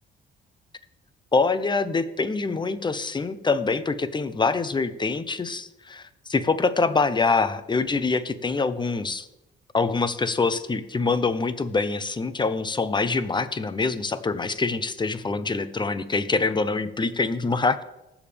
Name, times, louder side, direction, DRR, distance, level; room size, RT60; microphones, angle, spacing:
voice 1, 1.3-9.3 9.7-17.8, left 4 dB, 25° left, 13 dB, 0.8 m, -25 dB
19.0 x 7.2 x 3.5 m, 0.90 s
cardioid pair, 90°, 20 cm